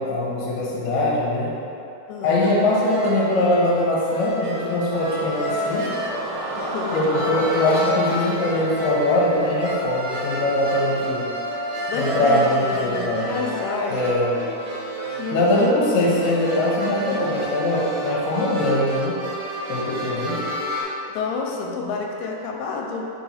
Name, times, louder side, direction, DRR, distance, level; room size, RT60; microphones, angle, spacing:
voice 1, 0.0-1.5 2.2-5.9 6.9-11.3 11.9-13.4 13.9-14.3 15.3-19.1 19.7-20.4, left 1 dB, 70° left, -5 dB, 1.7 m, -22 dB
voice 2, 2.1-2.4 6.6-7.1 11.9-14.0 15.1-15.5 21.1-23.1, left 4 dB, 90° left, 0 dB, 2.7 m, -29 dB
sound 1, 2.4-20.8, equal, 55° right, 2.0 m, -30 dB
sound 2, 5.2-10.7, right 1 dB, 85° right, 1.9 m, -34 dB
5.7 x 4.3 x 4.2 m, 2.8 s
omnidirectional pair, 4.7 m